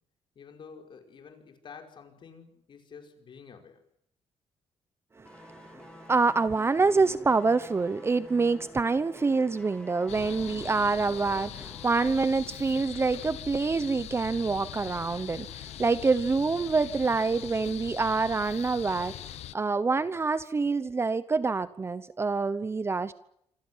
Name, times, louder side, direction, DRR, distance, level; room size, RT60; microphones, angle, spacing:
voice 1, 0.4-3.8 20.1-20.2, left 6 dB, 50° left, 4 dB, 5.3 m, -49 dB
voice 2, 5.2-23.1, right 4 dB, 25° right, 15 dB, 0.9 m, -26 dB
sound 1, 5.3-11.9 12.2-12.4, left 1 dB, 10° left, 3.2 m, -49 dB
sound 2, 10.1-19.5, left 12 dB, 85° left, 1.1 m, -42 dB
27.0 x 16.5 x 9.7 m, 0.72 s
cardioid pair, 135°, 11 cm